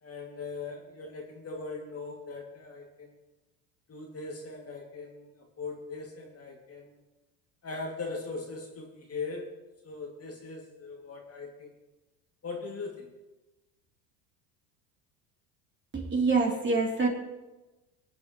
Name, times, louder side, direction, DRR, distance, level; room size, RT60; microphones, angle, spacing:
voice 1, 0.0-3.1 3.9-7.0 7.6-9.5 9.8-11.7 12.4-13.1, left 3 dB, 30° left, 0 dB, 2.5 m, -40 dB
voice 2, 15.9-17.1, right 4 dB, 25° right, -1 dB, 3.3 m, -25 dB
24.0 x 8.7 x 3.2 m, 1.1 s
hypercardioid pair, 80°, 48 cm